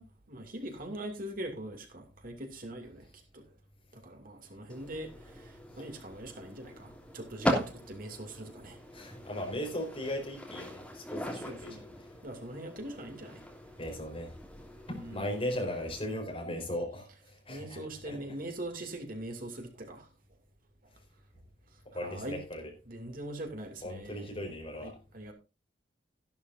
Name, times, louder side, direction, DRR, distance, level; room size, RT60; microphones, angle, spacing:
voice 1, 0.0-3.1 3.3-3.5 3.9-8.8 11.3-11.9 12.2-13.4 14.9-15.3 17.5-20.1 22.0-22.4 22.9-24.5 24.8-25.3, right 1 dB, 50° right, 2.6 m, -42 dB
sound 1, 4.7-16.2, equal, 5° left, 2.9 m, -40 dB
voice 2, 8.9-11.8 13.8-14.3 14.9-17.1 17.5-17.8 18.0-18.2 21.9-22.6 23.8-24.9, left 1 dB, 30° left, 4.5 m, -37 dB
14.0 x 11.5 x 2.6 m
head